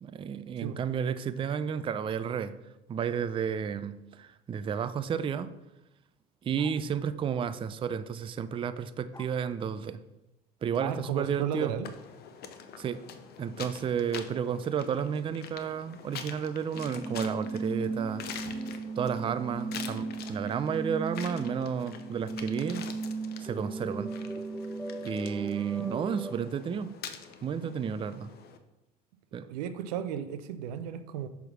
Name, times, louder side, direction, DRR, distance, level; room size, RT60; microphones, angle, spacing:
voice 1, 0.0-2.6 2.9-5.5 6.4-10.0 10.6-11.7 12.8-13.0 13.4-18.2 19.0-22.8 23.4-24.1 25.0-26.9 27.4-28.3 29.3-29.4, right 7 dB, 25° right, 0.4 m, -32 dB
sound 1, 6.6-6.9 9.1-9.4 11.5-11.8, left 2 dB, 20° left, 0.6 m, -51 dB
voice 2, 10.8-11.9 29.4-31.3, right 9 dB, 85° right, 0.5 m, -34 dB
sound 2, 11.8-28.6, left 7 dB, 55° left, 0.7 m, -46 dB
sound 3, 16.7-26.3, right 3 dB, 5° left, 1.1 m, -36 dB
6.1 x 3.5 x 6.0 m
supercardioid pair, 80°, 20 cm